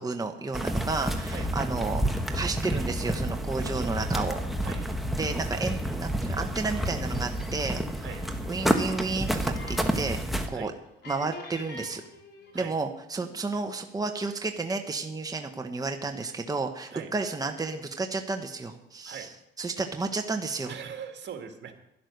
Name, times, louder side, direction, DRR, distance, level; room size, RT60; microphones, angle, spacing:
voice 1, 0.0-4.4 5.2-7.8 8.4-10.2 10.5-10.7 11.1-12.0 12.5-19.3 19.6-20.7, right 3 dB, 20° right, 5 dB, 1.2 m, -32 dB
sound 1, 0.5-10.5, right 1 dB, ahead, 1.6 m, -29 dB
sound 2, 8.1-10.3 10.6-10.7 11.0-12.7, left 2 dB, 60° left, 4.0 m, -44 dB
voice 2, 20.7-21.7, right 8 dB, 65° right, 5 dB, 2.0 m, -40 dB
11.5 x 11.0 x 6.6 m, 0.81 s
cardioid pair, 90°, 20 cm